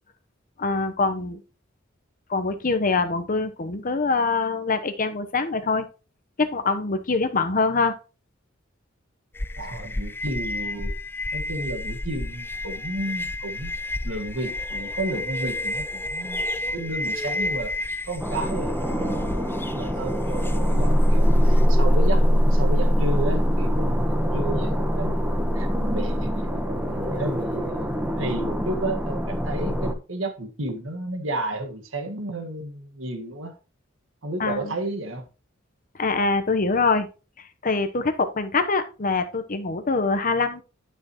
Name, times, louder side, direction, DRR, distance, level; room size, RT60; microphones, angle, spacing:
voice 1, 0.6-1.4 2.3-5.9 6.4-8.0 34.4-34.7 36.0-37.1 37.4-40.6, left 3 dB, 45° left, 1.0 m, -24 dB
sound 1, 9.3-21.6, left 2 dB, 10° left, 0.4 m, -31 dB
voice 2, 9.6-10.9 11.3-13.7 14.0-16.4 16.7-25.2 25.5-33.6 34.2-35.3, right 1 dB, 70° right, 1.7 m, -32 dB
sound 2, 18.2-29.9, equal, 5° right, 1.1 m, -22 dB
11.5 x 6.5 x 3.1 m
head